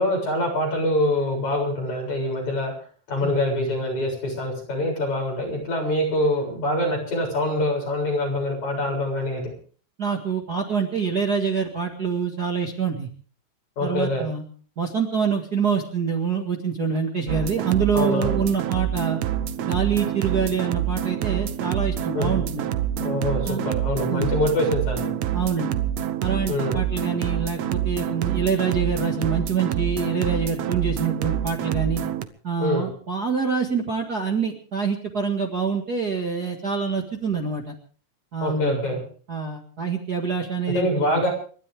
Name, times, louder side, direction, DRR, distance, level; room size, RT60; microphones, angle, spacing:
voice 1, 0.0-2.7 3.1-9.5 10.5-10.6 13.8-14.3 17.9-18.3 22.1-22.4 23.0-25.1 26.5-26.8 32.6-32.9 38.4-39.0 40.7-41.3, left 1 dB, 65° left, 0 dB, 8.6 m, -25 dB
voice 2, 10.0-13.1 13.8-14.4 14.8-19.2 19.7-22.7 23.4-23.7 24.1-24.3 25.3-25.8 26.2-32.0 32.4-37.7 38.3-38.8 39.3-41.2, right 6 dB, 35° right, 2 dB, 2.0 m, -26 dB
sound 1, 17.3-32.3, right 11 dB, 65° right, 1.8 m, -27 dB
29.5 x 12.5 x 3.6 m, 0.42 s
omnidirectional pair, 3.7 m